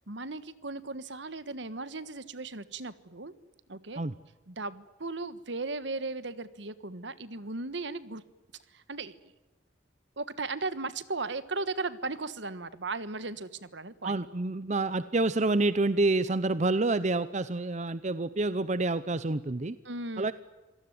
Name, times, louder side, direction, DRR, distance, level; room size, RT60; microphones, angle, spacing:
voice 1, 0.1-3.3 3.7-4.0 4.5-8.2 8.7-9.1 10.2-14.2 19.8-20.3, right 3 dB, 65° right, 15 dB, 1.5 m, -36 dB
voice 2, 14.0-19.8 20.2-20.3, right 2 dB, 35° right, 15 dB, 0.7 m, -28 dB
26.5 x 18.0 x 9.5 m, 1.2 s
head